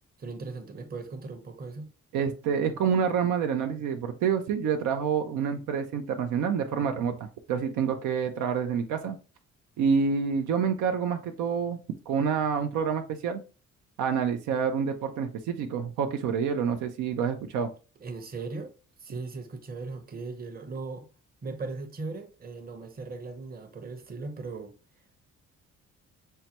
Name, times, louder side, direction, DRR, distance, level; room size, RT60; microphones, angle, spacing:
voice 1, 0.2-1.9 18.0-18.7 19.0-21.1 21.4-24.7, right 3 dB, 30° right, 0.8 m, -38 dB
voice 2, 2.1-9.2 9.8-11.8 12.1-13.4 14.0-17.7, right 6 dB, 80° right, 0.6 m, -27 dB
5.5 x 2.2 x 2.8 m
cardioid pair, 90°, 30 cm